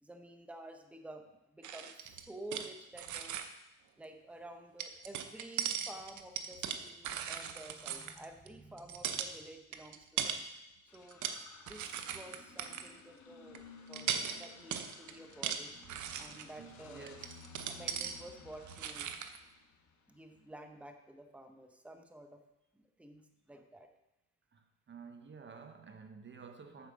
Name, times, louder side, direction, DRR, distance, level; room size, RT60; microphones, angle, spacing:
voice 1, 0.0-3.4 4.0-10.4 10.9-11.2 11.7-13.6 13.9-15.8 16.2-17.1 17.7-19.1 20.1-22.4 22.7-23.9, right 1 dB, 5° right, 5 dB, 1.0 m, -51 dB
sound 1, 1.6-2.7 3.0-3.5 4.8-8.5 8.8-9.3 9.7-10.4 10.9-11.4 11.7-12.9 13.6-13.7 13.9-16.5 17.1-18.2 18.6-19.4, right 8 dB, 75° right, 0.8 m, -39 dB
sound 2, 10.9-20.4, left 5 dB, 70° left, 1.4 m, -56 dB
voice 2, 16.3-17.4 24.5-26.9, right 5 dB, 40° right, 7 dB, 0.9 m, -52 dB
8.4 x 7.2 x 5.3 m, 0.92 s
cardioid pair, 90°, 30 cm